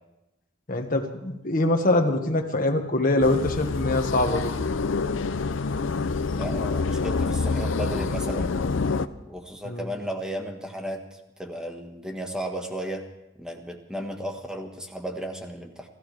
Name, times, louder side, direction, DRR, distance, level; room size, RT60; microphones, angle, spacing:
voice 1, 0.7-4.5 9.6-9.8, left 2 dB, 45° left, 3 dB, 1.7 m, -23 dB
sound 1, 3.2-9.1, left 4 dB, 90° left, 0.6 m, -27 dB
voice 2, 6.3-8.5 9.3-13.0 13.4-15.9, equal, 5° right, 3 dB, 1.6 m, -34 dB
28.5 x 14.0 x 3.5 m, 0.94 s
head